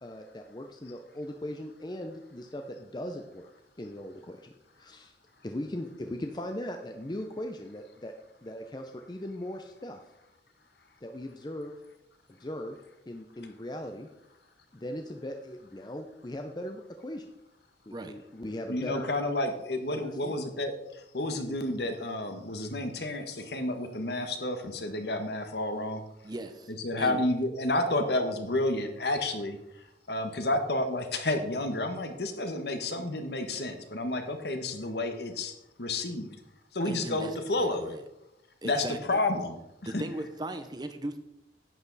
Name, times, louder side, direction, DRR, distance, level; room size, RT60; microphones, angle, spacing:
voice 1, 0.0-3.5 3.8-5.2 5.4-8.1 8.4-10.0 11.0-11.8 12.3-12.8 13.1-14.1 14.7-17.3 17.9-19.1 19.9-20.4, left 1 dB, 25° left, 4 dB, 0.5 m, -39 dB
voice 2, 18.7-26.0 26.8-29.6 30.1-35.5 35.8-36.3 36.7-38.0 38.6-39.6 39.9-40.0, left 2 dB, 65° left, 6 dB, 1.3 m, -30 dB
voice 3, 26.2-27.2 36.8-38.0 38.6-39.2 39.8-41.2, right 1 dB, 25° right, 9 dB, 0.7 m, -38 dB
11.0 x 8.4 x 4.0 m, 0.88 s
head